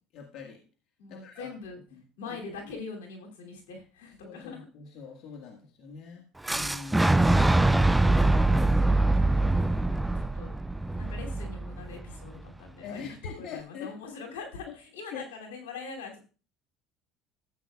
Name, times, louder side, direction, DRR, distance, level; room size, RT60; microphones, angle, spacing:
voice 1, 0.1-0.6 1.1-1.5 1.9-2.0 4.2-7.6 9.4-10.2 12.8-13.9 14.7-14.8 15.1-15.2, left 6 dB, 60° left, 2 dB, 1.6 m, -44 dB
voice 2, 1.0-1.8 2.2-4.7 8.3-9.2 10.1-10.5 11.0-16.2, left 4 dB, 90° left, 0 dB, 2.7 m, -42 dB
Fire / Explosion, 6.5-12.3, right 2 dB, 5° right, 0.4 m, -24 dB
14.0 x 8.0 x 2.3 m, 0.35 s
supercardioid pair, 90°, 0 cm